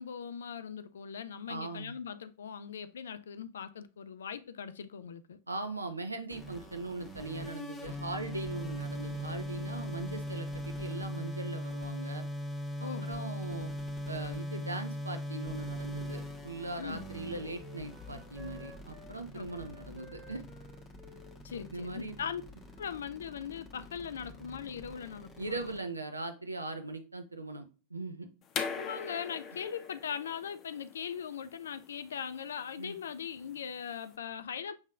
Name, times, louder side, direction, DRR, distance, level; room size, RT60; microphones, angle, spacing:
voice 1, 0.0-5.4 12.8-13.1 16.8-17.0 19.3-19.5 21.4-22.4 22.8-25.6 28.7-34.8, left 7 dB, 65° left, 0.3 m, -40 dB
voice 2, 1.5-1.9 5.5-12.2 12.8-13.7 14.1-20.4 21.7-22.2 25.4-27.6 27.9-28.3 32.8-33.0, right 2 dB, 85° right, 0.5 m, -40 dB
sound 1, 6.3-25.8, equal, 5° left, 1.3 m, -40 dB
Wind instrument woodwind instrument, 16.8-19.1 19.4-23.0 23.3-23.8, left 1 dB, 25° right, 1.9 m, -57 dB
sound 2, 28.5-34.1, left 6 dB, 30° left, 0.7 m, -42 dB
6.1 x 3.6 x 2.4 m
figure-of-eight pair, 90°, 0 cm